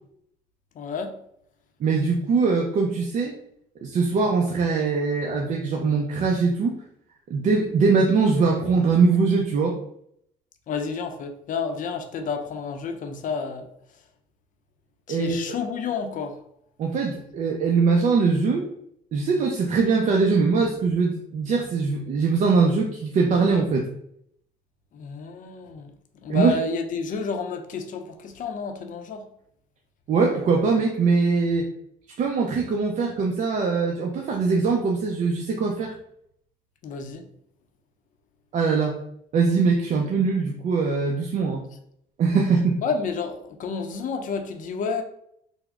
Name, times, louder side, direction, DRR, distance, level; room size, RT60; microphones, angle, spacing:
voice 1, 0.8-1.1 10.7-13.7 15.1-16.4 24.9-25.9 26.2-29.2 36.8-37.2 42.8-45.0, left 5 dB, 50° left, 6 dB, 0.5 m, -30 dB
voice 2, 1.8-3.3 3.8-6.7 7.3-9.8 15.1-15.6 16.8-18.7 19.1-23.9 26.3-26.5 30.1-31.7 32.2-35.9 38.5-39.0 39.3-41.6 42.2-42.8, right 4 dB, 45° right, 1 dB, 0.5 m, -22 dB
3.5 x 2.0 x 3.4 m, 0.72 s
cardioid pair, 110°, 17 cm